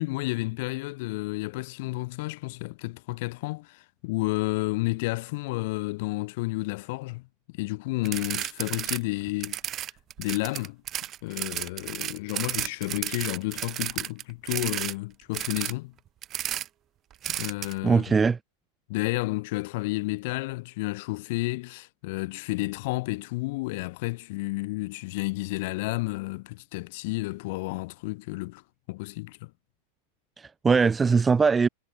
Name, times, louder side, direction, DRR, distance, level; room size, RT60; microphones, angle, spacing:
voice 1, 0.0-7.2 7.6-9.6 10.2-10.8 11.2-15.9 17.3-18.1 18.9-28.6 28.9-29.5, left 23 dB, 50° left, 3.3 m, -31 dB
sound 1, 8.1-9.0 9.3-14.9 15.3-15.7 16.2-16.7 17.2-17.7, right 12 dB, 30° right, 2.3 m, -32 dB
voice 2, 17.8-18.4 30.4-31.7, right 5 dB, 15° right, 0.5 m, -21 dB
figure-of-eight pair, 90°, 0 cm